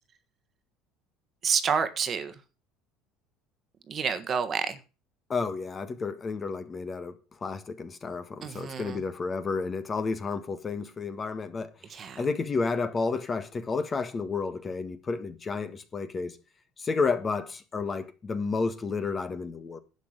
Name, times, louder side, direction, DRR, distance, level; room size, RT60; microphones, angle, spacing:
voice 1, 1.4-2.3 3.9-4.8 8.4-9.0 11.9-12.2, right 6 dB, 30° right, 1.5 m, -29 dB
voice 2, 5.3-7.2 7.4-11.7 12.2-16.4 16.8-19.8, left 4 dB, 20° left, 1.6 m, -31 dB
11.5 x 8.2 x 6.6 m
cardioid pair, 150°, 0 cm